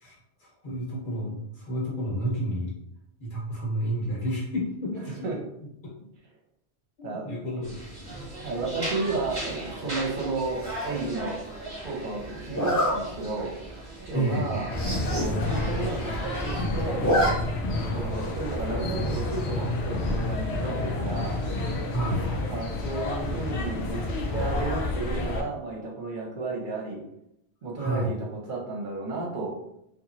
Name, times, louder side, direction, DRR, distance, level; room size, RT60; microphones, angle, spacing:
voice 1, 0.0-2.7 3.2-5.2 5.8-5.9 7.0-8.3 14.1-14.6 21.9-22.3 27.8-28.1, right 1 dB, 50° left, -4 dB, 1.1 m, -30 dB
sound 1, 7.6-16.6, right 2 dB, 25° right, 0.9 m, -38 dB
voice 2, 8.4-11.4 11.8-13.5 14.1-14.7 15.1-17.1 17.9-21.4 22.5-24.0 24.3-27.0 27.6-28.2 28.5-29.5, right 3 dB, 55° right, -2 dB, 0.8 m, -32 dB
Zipper (clothing), 10.6-11.0 12.5-12.9 13.5-13.7 14.0-14.1 14.3-14.4 14.7-15.3 15.7-15.8 15.9-16.5 16.8-17.3 17.6-17.7 19.1-19.5, equal, 20° left, 0.7 m, -27 dB
sound 2, 14.7-25.4, left 2 dB, 80° left, 0.9 m, -29 dB
2.9 x 2.5 x 2.5 m, 0.77 s
omnidirectional pair, 1.1 m